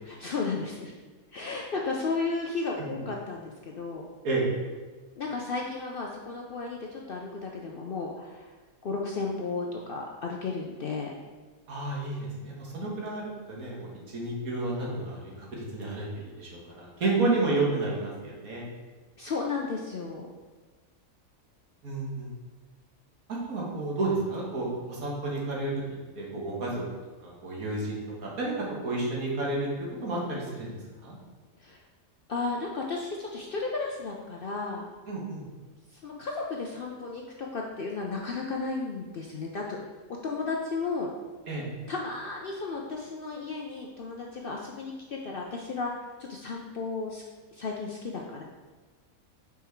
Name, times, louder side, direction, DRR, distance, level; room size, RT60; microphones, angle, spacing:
voice 1, 0.1-0.9 1.3-4.1 5.2-8.5 8.8-11.1 19.2-20.3 31.6-31.8 32.3-34.9 35.9-39.8 40.2-41.1 41.9-47.2 47.5-48.4, left 4 dB, 60° left, 0 dB, 0.6 m, -34 dB
voice 2, 11.7-16.1 16.4-18.7 21.8-22.3 23.3-25.8 26.2-26.8 27.2-28.5 28.8-29.7 30.0-30.7 31.0-31.1 35.1-35.4 41.5-41.6, right 2 dB, 75° right, -3 dB, 1.9 m, -31 dB
5.5 x 4.6 x 4.5 m, 1.3 s
omnidirectional pair, 1.5 m